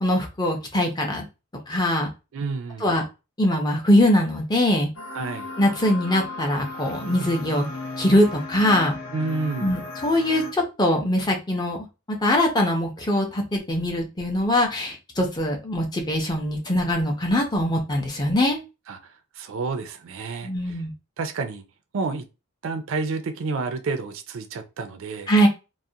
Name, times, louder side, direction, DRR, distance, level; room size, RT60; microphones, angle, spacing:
voice 1, 0.0-1.2 1.7-2.1 2.8-3.0 3.4-4.9 5.6-7.7 8.0-8.9 9.6-11.8 12.1-18.6 20.4-20.9 25.3-25.5, left 1 dB, 20° left, 0.5 m, -22 dB
voice 2, 2.3-2.9 5.1-5.5 9.1-9.8 18.9-20.8 21.2-21.6 21.9-22.3 22.6-25.3, right 4 dB, 60° right, 0.4 m, -30 dB
sound 1, 5.0-10.5, left 2 dB, 60° left, 0.6 m, -36 dB
2.4 x 2.0 x 2.7 m
head